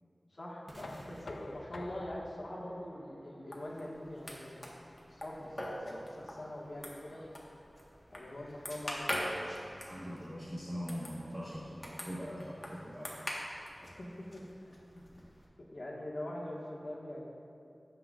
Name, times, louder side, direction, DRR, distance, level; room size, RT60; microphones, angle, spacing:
voice 1, 0.3-4.7 5.1-7.2 8.1-9.2 14.0-14.1 14.3-15.0 15.7-17.2, left 1 dB, 60° left, -4 dB, 1.6 m, -43 dB
sound 1, 0.7-2.8, equal, 35° right, 1.0 m, -53 dB
Knock, 0.8-6.6, left 2 dB, 80° left, 0.4 m, -53 dB
sound 2, 3.5-15.4, equal, 25° left, 1.4 m, -44 dB
voice 2, 9.9-13.1, equal, 20° right, -8 dB, 1.4 m, -41 dB
15.5 x 6.0 x 2.5 m, 2.6 s
wide cardioid pair, 70°, 0 cm